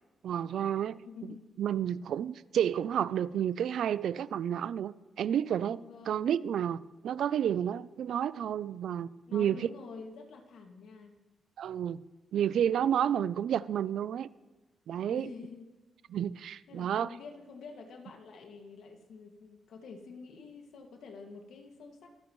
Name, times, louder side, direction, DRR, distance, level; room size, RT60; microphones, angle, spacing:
voice 1, 0.2-1.0 1.6-9.6 11.6-12.0 12.3-14.3 14.9-15.3 16.1-17.1, right 9 dB, 75° right, 0.4 m, -30 dB
voice 2, 1.0-1.5 5.8-6.4 9.3-11.2 15.0-15.7 16.7-22.1, left 4 dB, 85° left, 2.1 m, -48 dB
24.5 x 13.5 x 3.2 m
wide cardioid pair, 140°, 0 cm